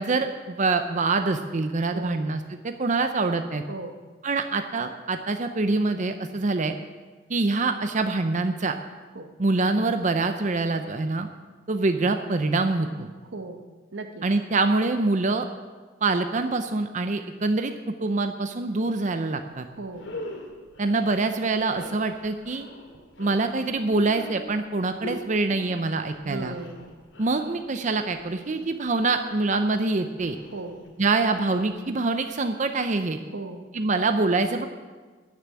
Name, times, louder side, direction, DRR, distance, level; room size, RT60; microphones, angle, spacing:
voice 1, 0.0-3.6 4.2-6.7 7.3-8.7 9.4-11.3 11.7-13.1 14.2-15.5 16.0-17.7 18.0-19.7 20.8-22.7 23.2-26.6 27.2-30.4 31.0-33.2 33.7-34.7, right 3 dB, 40° right, 7 dB, 0.7 m, -25 dB
voice 2, 13.3-13.6 13.9-14.3 19.8-20.1 26.2-26.9 30.5-30.8 33.3-33.7, right 3 dB, 85° right, 6 dB, 1.3 m, -36 dB
sound 1, 19.4-19.5 19.9-32.2, left 1 dB, 85° left, 2.4 m, -44 dB
14.5 x 7.0 x 9.8 m, 1.4 s
head